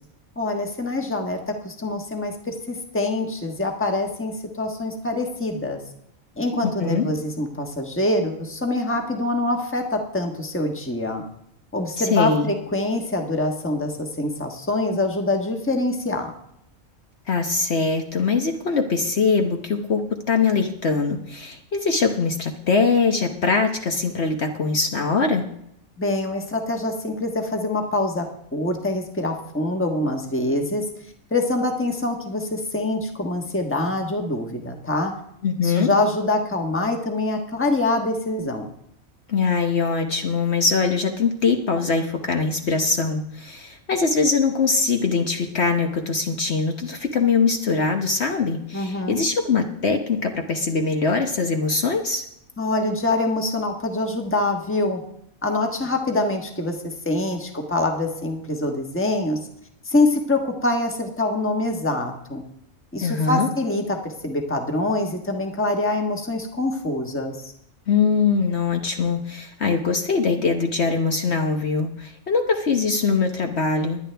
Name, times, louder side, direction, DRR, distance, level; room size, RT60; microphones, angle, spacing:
voice 1, 0.4-5.8 6.4-11.2 11.7-16.3 26.0-28.3 28.5-30.9 31.3-35.1 35.6-38.7 48.7-49.2 52.6-55.0 55.4-59.4 59.9-62.4 62.9-67.4, left 2 dB, 10° left, 3 dB, 1.3 m, -25 dB
voice 2, 6.6-7.1 12.0-12.5 17.3-25.5 35.4-35.9 39.3-52.2 63.0-63.5 67.9-74.0, left 4 dB, 55° left, 4 dB, 1.2 m, -22 dB
19.5 x 10.5 x 3.4 m, 0.74 s
omnidirectional pair, 1.4 m